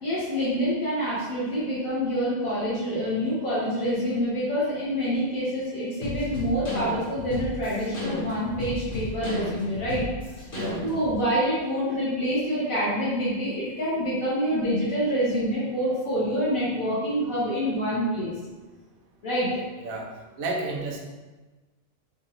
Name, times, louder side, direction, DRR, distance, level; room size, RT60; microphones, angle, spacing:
voice 1, 0.0-10.0 10.8-18.3 19.2-19.5, equal, 75° left, -9 dB, 1.6 m, -26 dB
sound 1, 6.0-11.1, left 2 dB, 40° left, 1.4 m, -33 dB
voice 2, 19.5-20.1 20.4-21.0, right 2 dB, 90° right, 0 dB, 1.2 m, -32 dB
4.3 x 2.5 x 4.3 m, 1.2 s
omnidirectional pair, 1.4 m